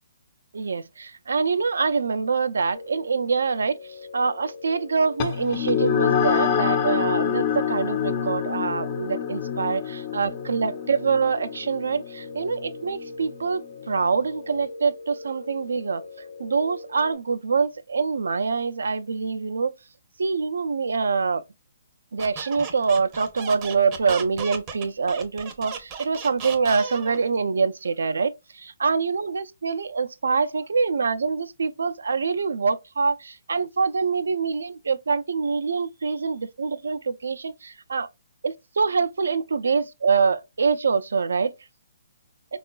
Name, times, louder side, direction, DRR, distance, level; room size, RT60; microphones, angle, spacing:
voice 1, 0.5-3.8 4.1-13.6 13.9-16.0 16.4-19.7 20.2-21.4 22.1-38.1 38.4-41.5, right 5 dB, 80° right, 0.4 m, -25 dB
sound 1, 2.7-17.1, left 3 dB, 85° left, 0.6 m, -41 dB
sound 2, 5.2-14.0, left 8 dB, 35° left, 0.5 m, -27 dB
Squeak, 22.2-27.2, right 6 dB, 25° right, 0.6 m, -35 dB
3.6 x 2.3 x 2.2 m
hypercardioid pair, 150°, 0 cm